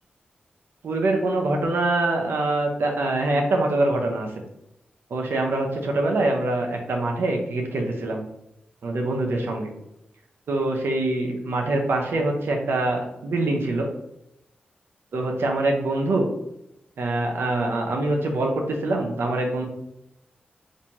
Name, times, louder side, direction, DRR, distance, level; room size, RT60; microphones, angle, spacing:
voice 1, 0.8-4.3 5.1-8.3 8.8-9.7 10.5-13.9 15.1-16.3 17.0-19.7, right 2 dB, 75° right, 2 dB, 0.7 m, -24 dB
4.2 x 2.6 x 2.9 m, 0.84 s
cardioid pair, 50°, 4 cm